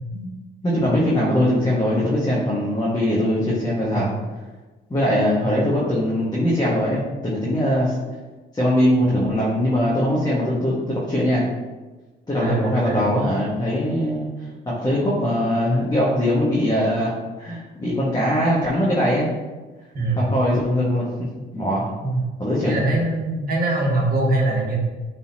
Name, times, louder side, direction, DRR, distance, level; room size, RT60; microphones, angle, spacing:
voice 1, 0.6-4.2 4.9-8.0 8.5-11.5 12.3-17.1 17.4-19.3 20.2-21.1 21.5-21.9 22.4-22.8, equal, 20° left, -7 dB, 1.8 m, -21 dB
voice 2, 12.4-13.1 19.9-20.2 22.0-22.2 22.6-24.8, right 2 dB, 50° right, -3 dB, 1.9 m, -23 dB
9.2 x 4.3 x 3.0 m, 1.2 s
cardioid pair, 90°, 20 cm